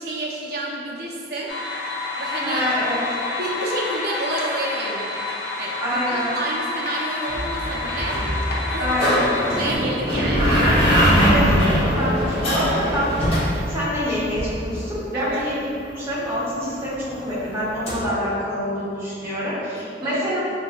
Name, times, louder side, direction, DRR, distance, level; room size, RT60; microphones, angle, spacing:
voice 1, 0.0-1.5 2.2-2.7 3.4-8.2 8.7-10.6 15.1-15.4 19.8-20.2, right 1 dB, 60° right, -3 dB, 0.6 m, -30 dB
sound 1, 1.5-9.8, left 3 dB, 60° left, 0.5 m, -29 dB
voice 2, 2.4-3.0 5.8-6.3 8.8-9.3 11.2-20.4, equal, 15° right, -9 dB, 0.9 m, -26 dB
sound 2, 7.3-14.9 17.9-18.0, equal, 30° left, 0.8 m, -21 dB
4.6 x 2.7 x 2.3 m, 2.5 s
head